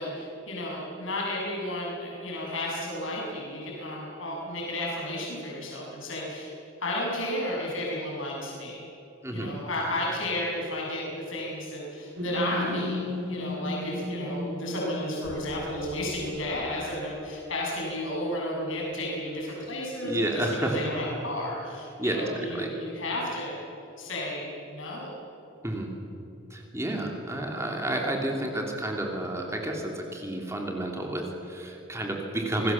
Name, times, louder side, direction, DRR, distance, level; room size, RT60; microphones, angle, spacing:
voice 1, 0.0-6.5 6.8-8.8 9.3-23.6 24.0-25.2, left 1 dB, 80° left, -3 dB, 7.0 m, -33 dB
sound 1, 12.2-16.9, left 1 dB, 65° right, 5.1 m, -35 dB
voice 2, 20.0-20.8 22.0-22.7 25.6-25.9 26.5-32.7, right 1 dB, 15° right, 1 dB, 2.9 m, -30 dB
27.0 x 19.5 x 7.5 m, 2.9 s
head